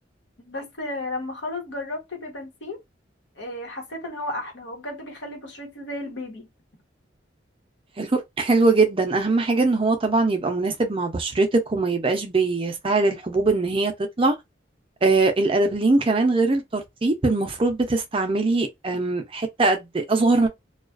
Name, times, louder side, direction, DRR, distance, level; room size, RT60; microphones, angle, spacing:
voice 1, 0.4-2.8 3.4-6.5, left 1 dB, 75° left, 1.1 m, -33 dB
voice 2, 8.0-13.9 14.2-14.3 15.0-20.5, right 3 dB, 30° right, 0.5 m, -21 dB
2.3 x 2.3 x 2.4 m
head